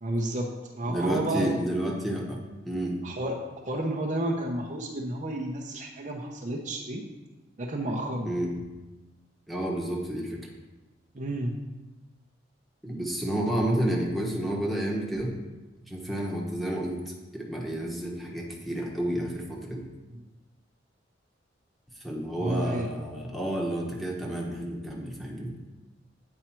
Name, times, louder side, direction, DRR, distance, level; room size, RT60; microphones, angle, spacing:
voice 1, 0.0-1.5 3.0-3.3 3.6-7.0 7.6-8.3 11.1-11.6 20.1-20.2 22.4-22.9, right 1 dB, 40° right, 0 dB, 0.8 m, -31 dB
voice 2, 0.9-2.4 2.6-3.0 8.2-8.5 9.5-10.4 12.8-15.3 15.9-17.0 17.3-19.9 22.0-25.5, right 1 dB, ahead, -2 dB, 1.1 m, -30 dB
8.7 x 4.7 x 4.5 m, 1.1 s
head